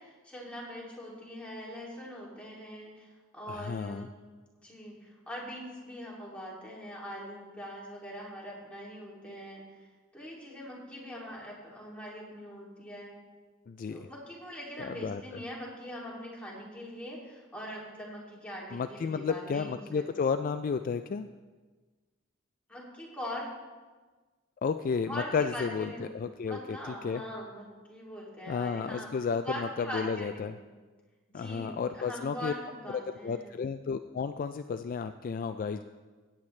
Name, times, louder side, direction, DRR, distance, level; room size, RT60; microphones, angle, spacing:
voice 1, 0.0-4.2 4.6-9.6 10.1-13.2 13.9-20.0 22.7-23.5 25.1-26.1 26.5-29.1 29.4-30.6 31.3-33.5, equal, 5° left, -5 dB, 2.6 m, -42 dB
voice 2, 3.5-4.1 13.7-14.1 14.8-15.2 18.7-21.3 24.6-26.8 27.0-27.2 28.5-30.6 31.3-32.5 32.9-35.8, left 5 dB, 45° left, 9 dB, 0.3 m, -32 dB
16.5 x 8.7 x 3.2 m, 1.3 s
head